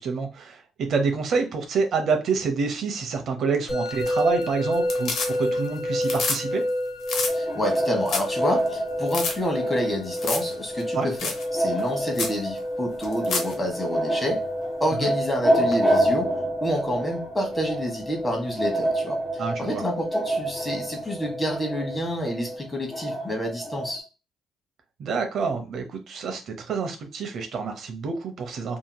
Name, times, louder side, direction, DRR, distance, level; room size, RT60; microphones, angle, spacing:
voice 1, 0.0-6.6 10.9-11.1 15.0-15.1 19.4-19.8 25.0-28.8, right 5 dB, 60° right, 5 dB, 0.6 m, -27 dB
Musical instrument, 3.7-22.6, left 1 dB, 45° left, 1.2 m, -31 dB
sound 1, 3.9-4.4 4.7-5.7 5.9-6.4 6.7-6.8 7.0-7.3 7.8-7.9 8.1-8.3 8.7-8.8 9.1-9.3 10.2-10.5 10.8-10.9 11.2-11.4 11.8-11.9 12.1-12.4 13.0-13.5 15.7-15.8, left 4 dB, 70° left, 0.9 m, -28 dB
voice 2, 7.3-14.4 14.8-16.3 16.6-24.0, equal, 15° left, 2 dB, 1.2 m, -29 dB
sound 2, 7.3-24.0, right 1 dB, 10° right, 1.3 m, -28 dB
2.8 x 2.8 x 2.2 m, 0.28 s
cardioid pair, 105°, 0 cm